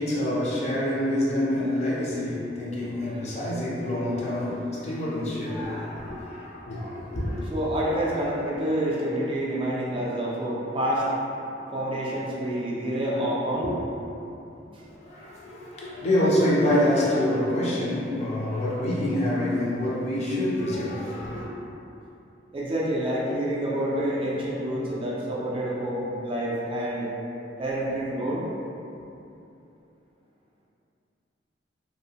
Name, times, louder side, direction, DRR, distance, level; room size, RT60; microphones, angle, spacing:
voice 1, 0.0-7.5 14.9-21.5, left 1 dB, 35° left, -7 dB, 0.5 m, -26 dB
voice 2, 7.5-11.3 11.6-14.2 14.7-14.8 22.5-27.1 27.6-28.4, right 1 dB, 30° right, -6 dB, 0.4 m, -28 dB
2.7 x 2.0 x 2.8 m, 2.7 s
head